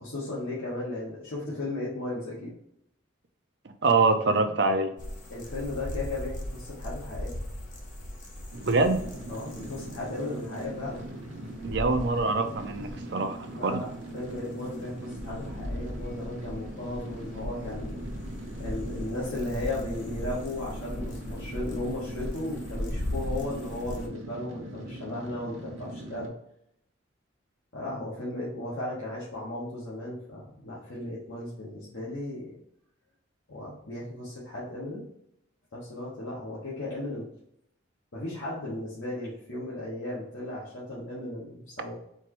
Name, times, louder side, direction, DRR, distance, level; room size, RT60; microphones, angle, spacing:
voice 1, 0.0-2.5 5.3-7.4 9.3-11.0 13.5-18.1 18.6-26.3 27.7-32.6 33.5-35.0 35.7-37.3 38.1-41.9, left 1 dB, 65° left, -8 dB, 1.3 m, -36 dB
voice 2, 3.6-4.9 8.7-9.0 11.6-13.8, right 3 dB, 55° right, 7 dB, 0.5 m, -25 dB
sound 1, 5.0-24.1, left 1 dB, 40° left, 0.8 m, -39 dB
sound 2, 8.5-26.3, right 1 dB, 70° right, 0.9 m, -41 dB
4.5 x 3.4 x 3.1 m, 0.75 s
head